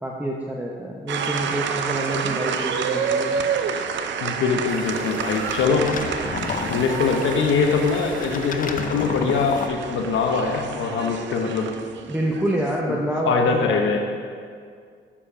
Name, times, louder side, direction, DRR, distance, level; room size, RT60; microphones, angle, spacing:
voice 1, 0.0-3.4 12.1-14.0, right 1 dB, 5° right, -2 dB, 0.8 m, -27 dB
sound 1, 1.1-12.8, right 6 dB, 70° right, 0.6 m, -29 dB
voice 2, 4.2-5.9 6.7-11.7 13.3-14.0, left 5 dB, 80° left, 3 dB, 1.1 m, -22 dB
sound 2, 4.7-9.7, left 6 dB, 45° left, 0.6 m, -33 dB
sound 3, 5.4-10.6, right 1 dB, 85° right, 1.9 m, -39 dB
7.4 x 6.9 x 5.0 m, 2.1 s
cardioid pair, 90°, 20 cm